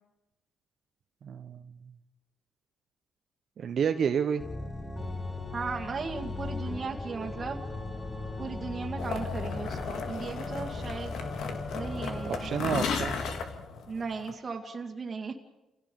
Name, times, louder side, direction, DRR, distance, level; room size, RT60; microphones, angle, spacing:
voice 1, 1.2-1.7 3.6-4.4 12.3-13.1, right 7 dB, 60° right, 8 dB, 1.0 m, -29 dB
Organ, 4.4-13.6, left 2 dB, 20° left, 2.3 m, -37 dB
voice 2, 5.5-7.6 8.4-11.3 11.7-12.5 13.9-15.3, right 4 dB, 35° right, 0 dB, 2.0 m, -36 dB
sound 1, 9.0-14.3, left 6 dB, 75° left, 2.2 m, -36 dB
29.5 x 17.0 x 5.4 m, 0.97 s
cardioid pair, 90°, 0 cm